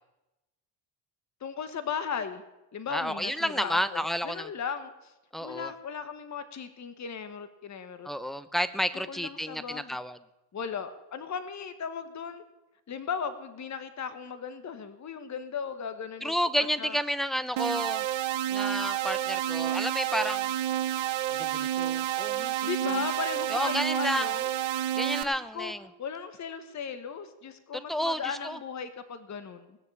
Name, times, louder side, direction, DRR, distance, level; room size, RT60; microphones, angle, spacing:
voice 1, 1.4-2.4 2.7-5.1 5.4-8.1 8.9-10.0 10.5-12.4 12.9-16.4 16.8-17.0 22.7-24.5 25.2-25.7 26.0-29.8, left 6 dB, 35° left, 10 dB, 1.4 m, -37 dB
voice 2, 2.9-4.5 5.3-5.7 8.0-10.2 16.2-18.1 18.5-20.5 21.3-22.7 23.5-24.3 24.9-25.9 27.7-28.6, equal, ahead, 14 dB, 0.8 m, -31 dB
sound 1, 17.6-25.2, right 12 dB, 75° right, 1.2 m, -29 dB
18.5 x 6.8 x 8.7 m, 0.96 s
cardioid pair, 90°, 46 cm